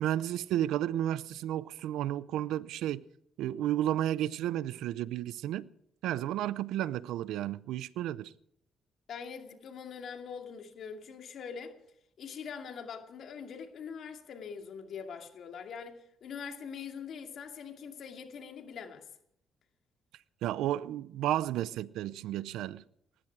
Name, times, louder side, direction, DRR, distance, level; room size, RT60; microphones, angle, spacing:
voice 1, 0.0-3.0 3.4-5.7 6.0-8.3 20.4-22.8, right 12 dB, 90° right, 0.6 m, -32 dB
voice 2, 9.1-11.7 12.2-19.1, left 6 dB, 65° left, 2.4 m, -43 dB
19.0 x 15.0 x 4.8 m
cardioid pair, 90°, 0 cm